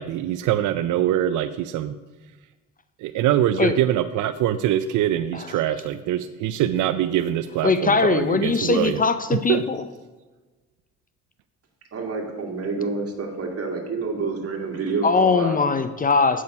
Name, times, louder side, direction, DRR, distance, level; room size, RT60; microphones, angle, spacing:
voice 1, 0.0-2.0 3.0-9.0 9.5-9.6, right 12 dB, 80° right, 11 dB, 0.5 m, -23 dB
voice 2, 5.3-5.6 7.6-9.9 15.0-16.4, left 4 dB, 30° left, 11 dB, 0.6 m, -21 dB
voice 3, 11.9-15.6, right 4 dB, 50° right, 2 dB, 2.1 m, -28 dB
8.5 x 6.2 x 5.4 m, 1.3 s
cardioid pair, 90°, 30 cm